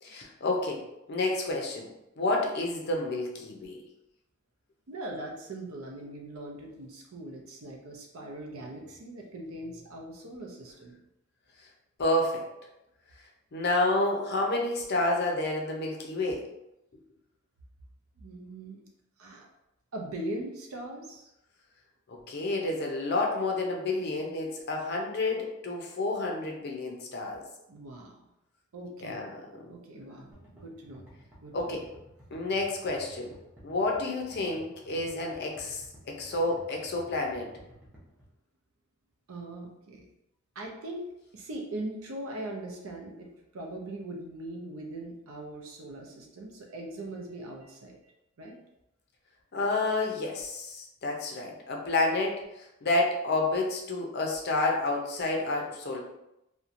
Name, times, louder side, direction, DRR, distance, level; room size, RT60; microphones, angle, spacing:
voice 1, 0.0-1.9 2.2-3.8 12.0-12.5 13.5-16.5 22.1-27.4 29.0-29.7 31.5-31.9 32.3-33.3 33.6-37.5 49.5-56.0, left 2 dB, 50° left, 0 dB, 0.5 m, -30 dB
voice 2, 4.9-11.0 18.2-18.8 19.2-19.5 19.9-21.3 27.7-28.3 28.7-29.2 29.7-31.1 31.4-31.8 39.3-40.1 40.5-41.1 41.3-48.0 48.4-48.6, right 1 dB, 80° right, 0 dB, 0.6 m, -40 dB
sound 1, 30.3-38.3, right 1 dB, 10° right, 0.6 m, -53 dB
2.8 x 2.2 x 2.5 m, 0.87 s
head